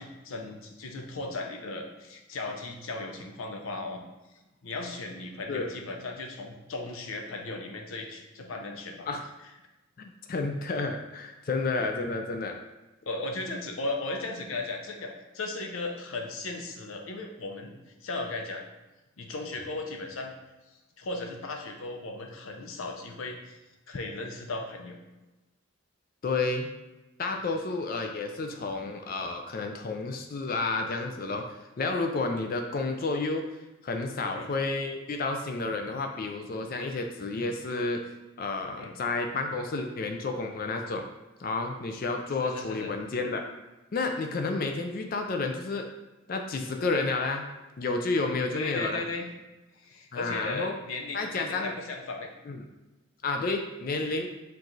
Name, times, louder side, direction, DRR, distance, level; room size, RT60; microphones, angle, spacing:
voice 1, 0.0-4.0 4.6-9.1 13.1-18.6 19.2-20.3 20.7-23.6 23.9-25.0 27.4-27.5 34.2-34.5 38.8-39.0 42.4-42.9 48.5-49.3 49.7-52.3, left 2 dB, 85° left, 3 dB, 0.6 m, -36 dB
voice 2, 10.0-12.6 26.2-26.7 27.2-31.5 31.8-33.5 33.8-41.0 41.4-43.4 43.9-45.9 46.3-47.5 47.8-49.0 50.1-50.7 51.1-51.7 52.5-52.6 53.2-54.3, left 3 dB, 45° left, 4 dB, 0.3 m, -31 dB
4.6 x 2.5 x 3.9 m, 1.0 s
head